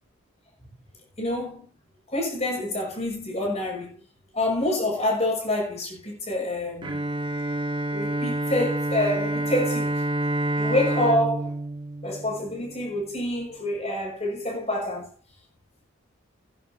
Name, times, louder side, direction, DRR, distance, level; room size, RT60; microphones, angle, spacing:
voice 1, 1.2-1.7 2.1-4.0 4.3-7.0 7.9-10.0 10.6-11.5 12.0-15.1, left 1 dB, 30° left, 6.3 m, -27 dB
Bowed string instrument, 6.8-13.0, right 1 dB, 25° right, 1.7 m, -28 dB
17.5 x 11.0 x 2.9 m
head